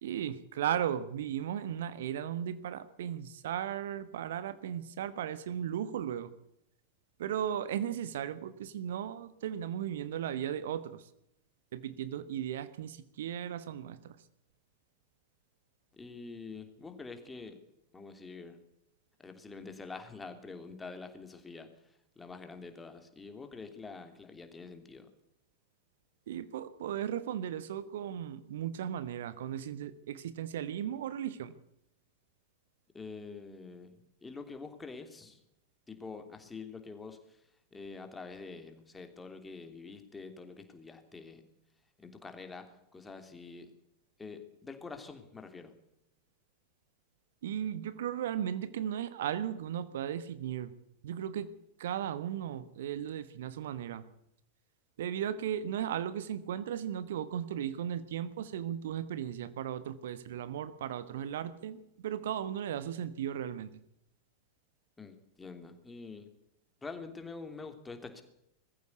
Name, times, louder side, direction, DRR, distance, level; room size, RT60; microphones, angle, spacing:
voice 1, 0.0-6.3 7.2-11.0 11.7-14.2 26.3-31.5 47.4-50.7 51.0-51.5 51.8-54.0 55.0-63.7, right 10 dB, 60° right, 14 dB, 1.3 m, -36 dB
voice 2, 15.9-17.6 17.9-18.6 19.2-25.1 32.9-33.9 34.2-35.4 35.9-41.4 42.0-43.7 44.2-45.7 65.0-66.3 66.8-68.2, left 4 dB, 10° left, 6 dB, 3.1 m, -46 dB
21.0 x 15.0 x 8.3 m, 0.81 s
figure-of-eight pair, 90°, 0 cm